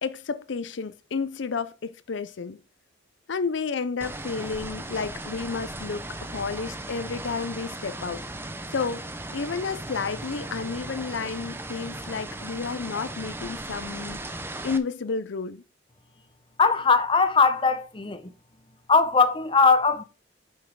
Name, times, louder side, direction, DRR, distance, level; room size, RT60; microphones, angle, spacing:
voice 1, 0.0-2.6 3.3-6.0 6.3-8.2 8.7-9.0 9.3-15.6, left 5 dB, 65° left, 0.5 m, -31 dB
sound 1, 4.0-14.8, right 2 dB, 10° right, 0.6 m, -37 dB
voice 2, 16.6-18.2 18.9-20.0, left 4 dB, 25° left, 0.7 m, -20 dB
7.9 x 5.4 x 4.7 m
head